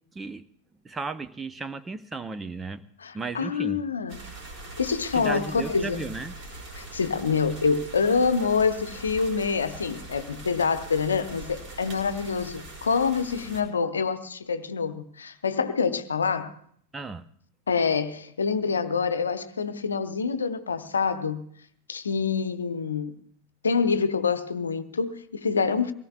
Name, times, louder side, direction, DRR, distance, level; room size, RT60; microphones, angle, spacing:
voice 1, 0.8-2.8 3.1-3.9 5.1-6.4 16.9-17.2, right 3 dB, 15° right, 0.6 m, -34 dB
voice 2, 3.0-4.2 4.8-6.0 6.8-16.6 17.7-21.5 21.9-23.1 23.6-25.9, left 5 dB, 70° left, 0.8 m, -26 dB
sound 1, 4.1-13.6, right 2 dB, 40° right, 4.9 m, -42 dB
24.0 x 18.0 x 2.4 m
figure-of-eight pair, 90°, 0 cm